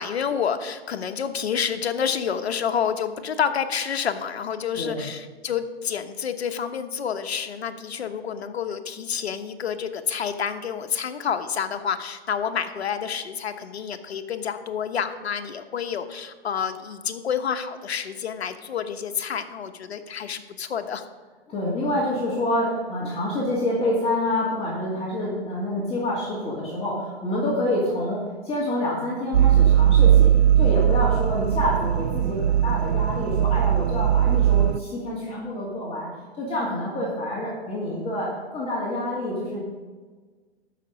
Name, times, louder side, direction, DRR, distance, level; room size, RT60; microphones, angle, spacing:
voice 1, 0.0-21.0, left 7 dB, 75° left, 8 dB, 1.1 m, -29 dB
voice 2, 4.8-5.1 21.5-36.1 36.4-39.6, left 1 dB, 20° left, -6 dB, 2.4 m, -27 dB
sound 1, 29.3-34.8, right 10 dB, 85° right, 0.5 m, -19 dB
13.5 x 6.1 x 5.3 m, 1.4 s
hypercardioid pair, 125°, 32 cm